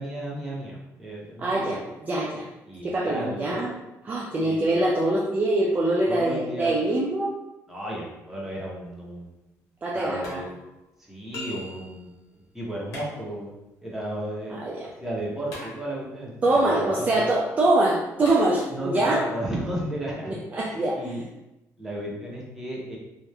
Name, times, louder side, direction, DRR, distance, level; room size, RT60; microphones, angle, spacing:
voice 1, 0.0-1.8 2.7-3.6 4.4-4.7 6.1-6.8 7.7-9.3 9.9-10.6 11.1-13.5 13.8-17.3 18.7-20.4 20.6-21.2 21.8-23.0, right 1 dB, 5° right, -5 dB, 0.7 m, -34 dB
voice 2, 1.4-2.5 2.8-3.7 4.0-7.3 9.8-10.4 14.5-14.9 16.4-19.2 20.2-21.2, right 2 dB, 25° right, -4 dB, 0.3 m, -24 dB
sound 1, 8.9-9.0 10.2-10.9 12.9-13.7 15.5-16.3 18.2-18.4, left 1 dB, 85° left, 0.9 m, -43 dB
sound 2, 11.3-12.4, left 2 dB, 55° left, 0.5 m, -39 dB
2.9 x 2.1 x 2.3 m, 0.94 s
cardioid pair, 140°, 6 cm